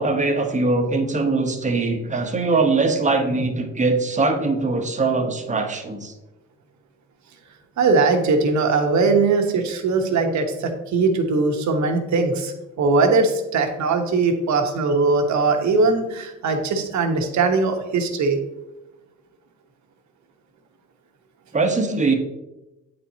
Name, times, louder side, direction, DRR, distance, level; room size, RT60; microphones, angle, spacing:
voice 1, 0.0-6.1 21.5-22.1, right 3 dB, 25° right, 4 dB, 1.0 m, -21 dB
voice 2, 7.8-18.4, right 3 dB, 70° right, 4 dB, 1.1 m, -20 dB
8.6 x 4.3 x 2.8 m, 0.99 s
cardioid pair, 90°, 30 cm